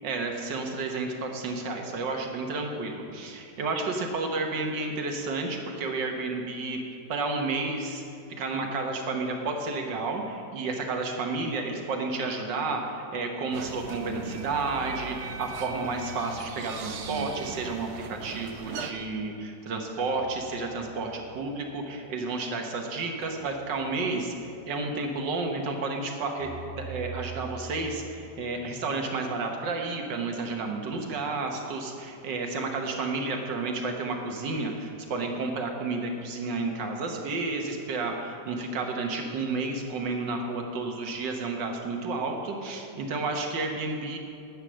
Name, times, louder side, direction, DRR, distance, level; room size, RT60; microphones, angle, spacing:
voice 1, 0.0-6.8 7.1-8.0 8.4-44.2, right 3 dB, 75° right, 3 dB, 1.9 m, -31 dB
sound 1, 13.5-18.9, right 6 dB, 60° right, 0.7 m, -39 dB
sound 2, 13.9-14.8 16.8-18.4 20.0-21.3 23.2-24.3 26.4-28.5, right 4 dB, 25° right, 0.9 m, -44 dB
11.5 x 8.3 x 6.3 m, 2.6 s
omnidirectional pair, 1.9 m